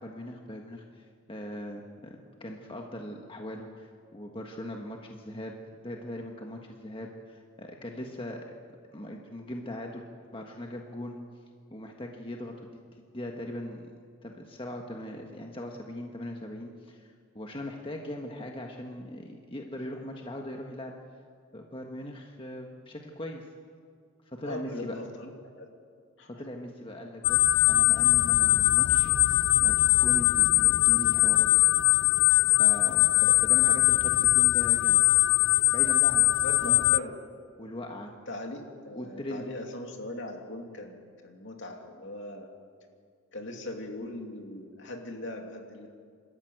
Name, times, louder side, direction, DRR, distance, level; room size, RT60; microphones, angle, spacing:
voice 1, 0.0-5.5 5.8-8.5 8.9-10.1 10.3-11.2 11.7-12.8 13.1-13.9 14.2-20.9 21.5-23.5 24.3-25.0 26.4-29.1 29.6-31.5 32.6-35.0 35.7-36.3 36.6-36.8 37.6-38.1 39.0-39.4, left 1 dB, 25° left, 1 dB, 1.5 m, -40 dB
voice 2, 24.4-25.7 26.2-26.3 36.4-37.2 38.3-42.5 43.3-45.9, left 1 dB, 60° left, 2 dB, 2.8 m, -40 dB
sound 1, 27.2-37.0, left 19 dB, 75° left, 0.5 m, -22 dB
26.5 x 13.5 x 9.3 m, 2.2 s
head